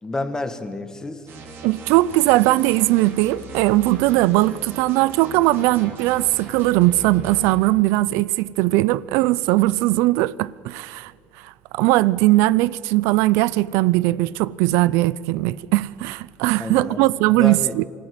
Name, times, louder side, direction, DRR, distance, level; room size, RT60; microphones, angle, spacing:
voice 1, 0.0-1.3 16.6-17.0 17.4-17.7, left 2 dB, 15° left, 1.7 m, -29 dB
sound 1, 1.3-7.5, right 2 dB, 60° right, 3.8 m, -39 dB
voice 2, 1.6-11.1 11.4-17.8, right 18 dB, 80° right, 0.5 m, -19 dB
25.0 x 14.0 x 7.9 m
supercardioid pair, 105°, 4 cm